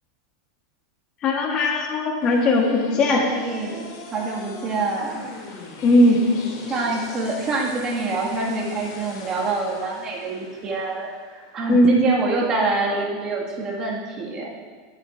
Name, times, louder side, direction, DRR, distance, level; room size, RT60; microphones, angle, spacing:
voice 1, 1.2-3.3 5.8-6.2 11.7-11.9, left 1 dB, 35° left, 1 dB, 1.3 m, -18 dB
sound 1, 2.2-12.2, left 2 dB, 70° left, 2.8 m, -40 dB
voice 2, 3.1-5.3 6.7-14.5, right 3 dB, 30° right, -2 dB, 2.0 m, -26 dB
12.0 x 11.5 x 2.6 m, 1.5 s
supercardioid pair, 130°, 2 cm